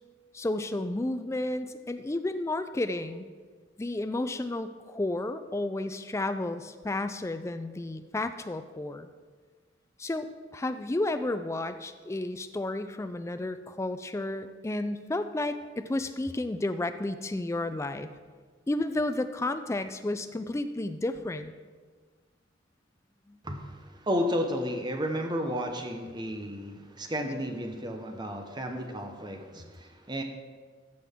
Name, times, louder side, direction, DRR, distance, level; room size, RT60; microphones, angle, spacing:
voice 1, 0.3-3.3 3.8-9.1 10.0-18.1 18.7-21.5 23.3-23.4 27.3-27.4 29.6-29.7, left 2 dB, 15° left, 10 dB, 0.3 m, -32 dB
voice 2, 23.4-30.2, equal, 20° right, 4 dB, 0.8 m, -32 dB
13.5 x 5.9 x 3.6 m, 1.5 s
head